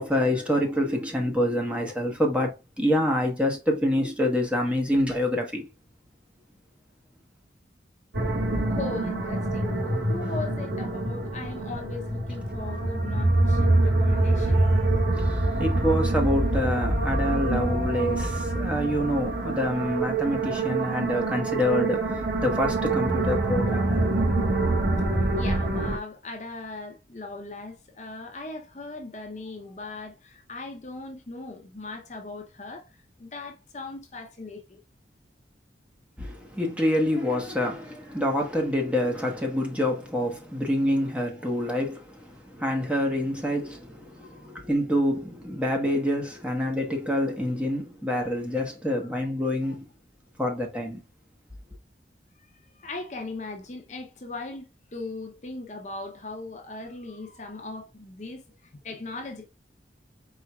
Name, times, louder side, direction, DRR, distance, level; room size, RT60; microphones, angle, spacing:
voice 1, 0.0-5.7 10.3-10.4 15.2-24.0 36.2-49.9 50.4-51.0, left 1 dB, 5° right, 1.2 m, -27 dB
sound 1, 8.1-26.0, right 2 dB, 70° right, 1.3 m, -25 dB
voice 2, 8.7-15.4 24.4-24.6 25.4-32.9 33.2-34.8 44.2-44.5 49.6-49.7 52.8-59.5, left 3 dB, 40° left, 0.7 m, -39 dB
4.6 x 4.4 x 2.3 m
head